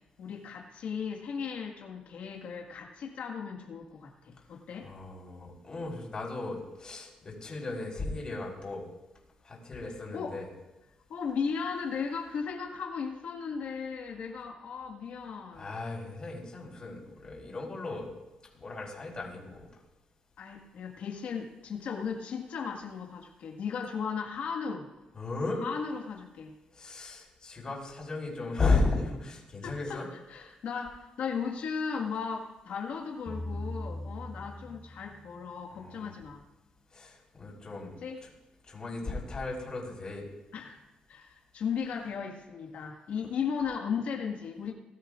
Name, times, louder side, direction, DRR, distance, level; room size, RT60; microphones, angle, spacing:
voice 1, 0.2-4.9 10.1-10.4 11.1-15.7 20.4-24.9 25.6-26.5 29.6-30.0 30.3-36.4 38.0-38.2 40.5-40.8 41.1-44.7, left 6 dB, 75° left, 1 dB, 1.7 m, -36 dB
voice 2, 4.8-8.8 9.4-10.4 15.6-18.1 18.5-19.7 25.1-25.6 26.7-30.1 35.7-36.1 36.9-37.9 38.2-38.3 38.7-40.2, left 3 dB, 35° left, -2 dB, 4.1 m, -35 dB
sound 1, 33.3-35.7, left 1 dB, 5° right, 1.4 m, -39 dB
20.0 x 12.5 x 2.5 m, 1.0 s
cardioid pair, 110°, 3 cm